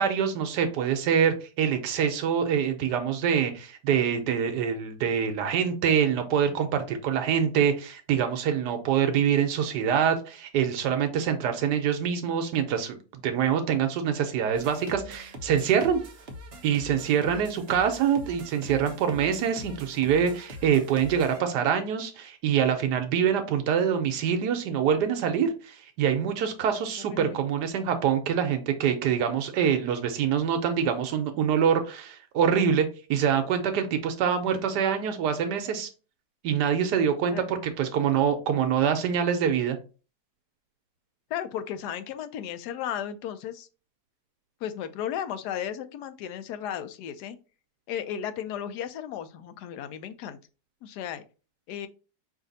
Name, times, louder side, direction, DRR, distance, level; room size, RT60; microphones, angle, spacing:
voice 1, 0.0-16.0 16.6-35.9 36.4-39.8, right 8 dB, 80° right, 7 dB, 1.3 m, -25 dB
sound 1, 14.5-21.4, left 1 dB, 50° right, 0.9 m, -43 dB
voice 2, 41.3-43.7 44.6-47.4 47.9-50.4 50.8-51.2 51.7-51.9, left 9 dB, 80° left, 11 dB, 1.1 m, -34 dB
4.8 x 2.6 x 3.9 m, 0.34 s
omnidirectional pair, 1.7 m